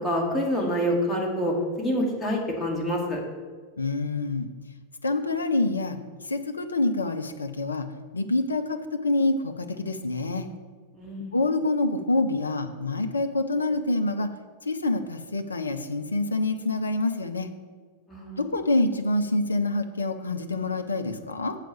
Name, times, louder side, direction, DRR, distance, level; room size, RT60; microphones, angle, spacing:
voice 1, 0.0-3.2 10.9-11.3 18.1-18.4, equal, 10° left, -4 dB, 2.4 m, -27 dB
voice 2, 3.8-4.5 5.0-7.9 8.1-10.5 11.3-14.3 14.6-17.5 18.4-21.6, left 2 dB, 75° left, 7 dB, 0.6 m, -26 dB
7.6 x 4.9 x 7.0 m, 1.5 s
figure-of-eight pair, 90°, 0 cm